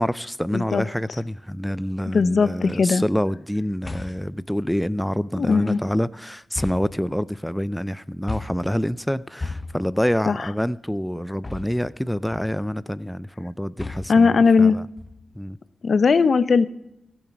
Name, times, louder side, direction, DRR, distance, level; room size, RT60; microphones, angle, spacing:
voice 1, 0.0-14.8 15.4-15.6, equal, 5° left, 17 dB, 0.3 m, -27 dB
voice 2, 0.5-0.8 2.1-3.0 5.4-5.8 10.3-10.5 14.1-14.8 15.8-16.7, left 5 dB, 60° left, 16 dB, 0.6 m, -18 dB
sound 1, 2.6-2.9 3.8-4.4 5.5-6.0 6.5-7.5 8.3-8.8 9.4-10.0 11.4-12.0 12.3-12.8 13.8-14.3 15.0-15.5, left 3 dB, 25° left, 0.8 m, -36 dB
16.0 x 7.2 x 5.8 m, 0.82 s
cardioid pair, 75°, 0 cm